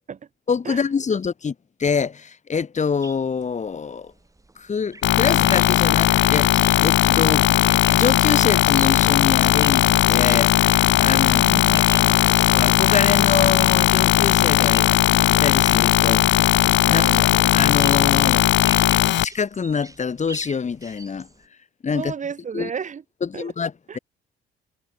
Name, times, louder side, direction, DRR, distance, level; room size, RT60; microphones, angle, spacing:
voice 1, 0.5-1.5 1.8-4.1 4.6-7.5 7.9-14.9 15.3-16.4 16.9-17.0 17.5-18.4 19.2-21.3 21.8-22.1 22.5-22.7 23.2-24.0, left 6 dB, 35° left, 1.9 m, -25 dB
sound 1, 3.0-21.5, right 2 dB, 15° right, 2.8 m, -42 dB
sound 2, 5.0-19.2, left 14 dB, 65° left, 0.5 m, -17 dB
voice 2, 11.2-11.9 16.8-17.5 18.2-18.3 21.9-23.0 23.3-23.5 23.9-24.0, right 7 dB, 40° right, 0.8 m, -32 dB
cardioid pair, 90°, 20 cm